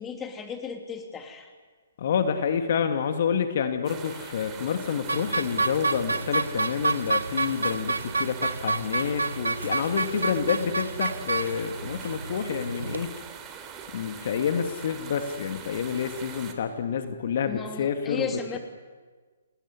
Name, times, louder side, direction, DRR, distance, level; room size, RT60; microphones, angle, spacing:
voice 1, 0.0-1.5 17.5-18.6, left 6 dB, 15° left, 5 dB, 3.1 m, -35 dB
voice 2, 2.0-13.1 13.9-18.6, left 7 dB, 50° left, 7 dB, 2.3 m, -28 dB
sound 1, 3.8-16.5, right 7 dB, 20° right, 3.4 m, -42 dB
sound 2, 5.1-13.0, right 3 dB, 80° right, 1.0 m, -29 dB
28.5 x 20.0 x 9.9 m, 1.4 s
figure-of-eight pair, 130°, 0 cm